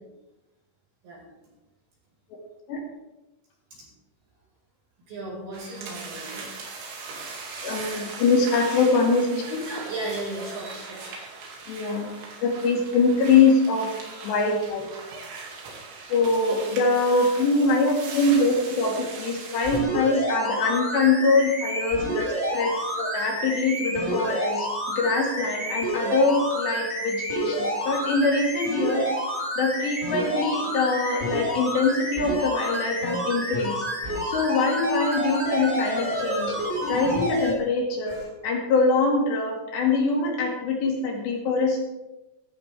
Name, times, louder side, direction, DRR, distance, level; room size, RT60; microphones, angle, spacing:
voice 1, 5.1-6.5 7.5-7.8 9.7-11.3 11.6-11.9 18.0-18.4 22.7-23.0 27.5-28.0 38.1-38.3, right 2 dB, 50° right, -4 dB, 6.5 m, -37 dB
sound 1, 5.5-19.8, right 4 dB, 70° right, 4.6 m, -39 dB
voice 2, 7.6-9.6 11.7-12.1 12.4-13.9 14.2-14.9 16.1-29.1 29.6-33.8 34.2-36.6 36.9-38.2 38.4-41.8, left 3 dB, 70° left, -1 dB, 4.3 m, -23 dB
sound 2, 19.6-37.5 38.1-38.2, right 1 dB, 15° right, 3.9 m, -29 dB
15.0 x 14.0 x 3.5 m, 1.0 s
omnidirectional pair, 5.4 m